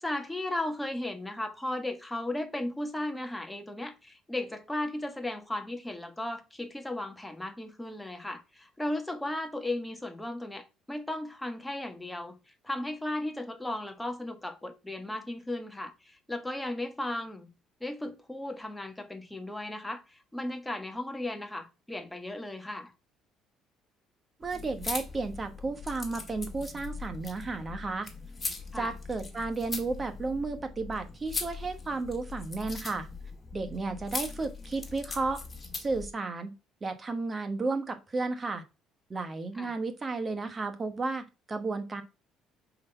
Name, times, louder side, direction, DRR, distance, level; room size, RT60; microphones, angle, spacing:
voice 1, 0.0-12.4 12.6-17.5 17.8-22.9 28.7-29.0 39.5-39.7, left 1 dB, 5° left, 1.2 m, -36 dB
sound 1, 24.4-36.1, left 4 dB, 25° left, 1.7 m, -40 dB
voice 2, 24.4-28.1 28.7-33.1 33.5-35.4 35.8-36.5 36.8-38.6 39.1-42.0, right 3 dB, 25° right, 1.2 m, -33 dB
5.2 x 4.0 x 5.5 m
cardioid pair, 95°, 0 cm